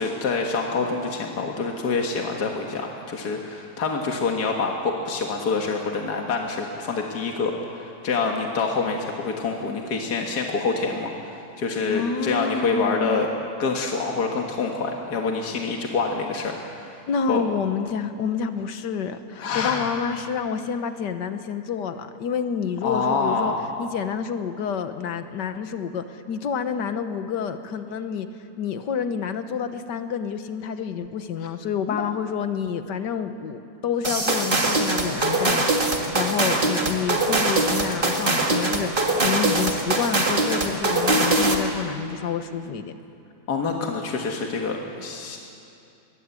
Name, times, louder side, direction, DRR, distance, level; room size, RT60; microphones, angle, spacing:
voice 1, 0.0-13.3 13.6-17.0 17.3-17.4 19.4-19.9 22.8-23.6 31.9-32.0 43.5-45.4, left 4 dB, 70° left, 1 dB, 2.1 m, -26 dB
voice 2, 11.9-13.2 17.1-23.5 23.8-28.3 28.6-35.7 36.1-43.0, left 7 dB, 90° left, 9 dB, 1.7 m, -28 dB
sound 1, 34.0-41.7, right 2 dB, 30° right, 2.0 m, -22 dB
21.0 x 21.0 x 8.3 m, 2.7 s
omnidirectional pair, 1.8 m